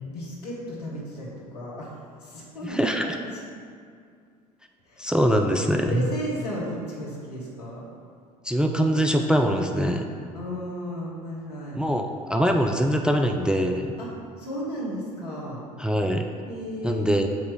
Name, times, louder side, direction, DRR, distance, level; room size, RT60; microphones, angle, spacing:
voice 1, 0.1-1.9 2.2-3.3 4.9-5.1 5.4-7.9 10.3-11.8 14.0-14.1 14.4-15.6 16.5-17.1, equal, 80° left, -5 dB, 1.5 m, -34 dB
voice 2, 2.6-3.2 5.0-6.1 8.4-10.1 11.7-13.9 15.8-16.3 16.8-17.3, equal, 5° right, 3 dB, 0.4 m, -23 dB
8.1 x 3.0 x 4.9 m, 2.2 s
figure-of-eight pair, 60°, 20 cm